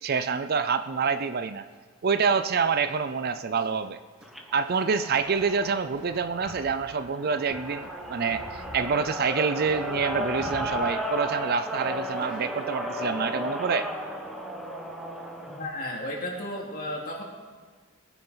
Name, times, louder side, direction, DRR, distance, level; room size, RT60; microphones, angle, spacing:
voice 1, 0.0-1.6 2.0-4.0 4.5-13.9, right 5 dB, 45° right, 11 dB, 0.4 m, -27 dB
sound 1, 1.0-12.8, left 1 dB, 25° right, 3.8 m, -49 dB
sound 2, 4.2-15.6, equal, ahead, 1.0 m, -35 dB
voice 2, 15.4-17.2, left 1 dB, 40° left, -2 dB, 2.6 m, -34 dB
21.5 x 10.0 x 4.0 m, 1.5 s
head